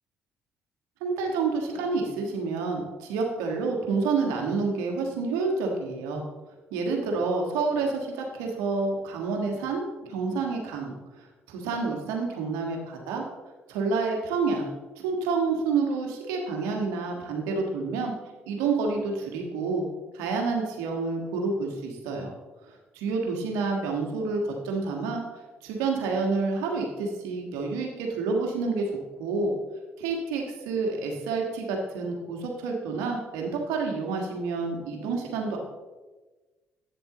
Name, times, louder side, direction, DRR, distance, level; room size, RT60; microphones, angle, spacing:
voice 1, 1.0-6.2 6.7-13.2 13.7-14.7 15.0-18.1 18.5-19.8 20.1-22.3 22.9-25.2 25.6-28.8 29.2-29.5 30.0-35.6, right 4 dB, 80° right, 1 dB, 1.5 m, -28 dB
8.9 x 7.0 x 3.8 m, 1.2 s
hypercardioid pair, 55°, 5 cm